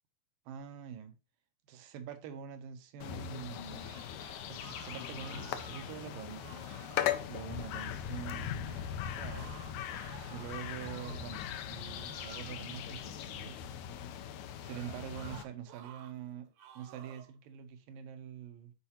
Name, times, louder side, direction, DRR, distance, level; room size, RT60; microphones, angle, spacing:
voice 1, 0.5-1.2 1.7-3.9 4.5-7.0 7.3-9.6 10.3-13.6 14.6-16.5 16.8-18.7, right 9 dB, 90° right, 2.5 m, -45 dB
sound 1, 3.0-15.4, left 10 dB, 80° left, 1.8 m, -39 dB
sound 2, 3.6-6.0 6.4-7.3 8.6-11.4 11.8-12.8 14.6-16.1 16.6-17.3, right 9 dB, 75° right, 2.0 m, -54 dB
8.0 x 4.6 x 2.8 m
omnidirectional pair, 3.9 m